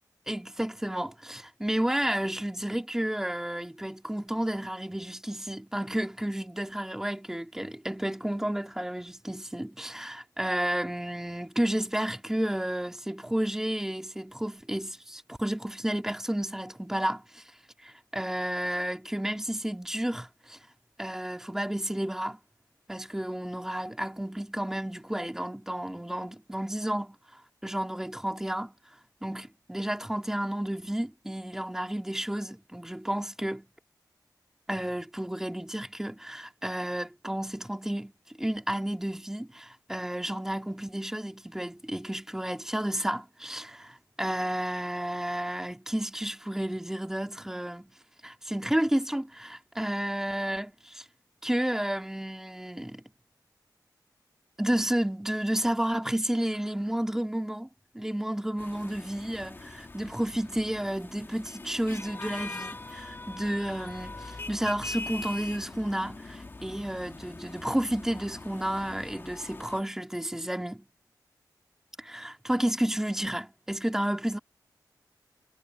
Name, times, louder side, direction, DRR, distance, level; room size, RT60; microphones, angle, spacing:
voice 1, 0.3-17.4 17.8-20.6 21.0-22.4 22.9-27.2 27.6-28.7 29.2-33.7 34.7-38.1 38.4-47.9 48.2-51.0 51.4-53.0 54.6-57.7 57.9-70.9 72.0-74.4, right 1 dB, 5° right, 2.6 m, -31 dB
sound 1, 58.6-69.8, left 2 dB, 30° left, 2.1 m, -42 dB
wide cardioid pair, 125°, 7 cm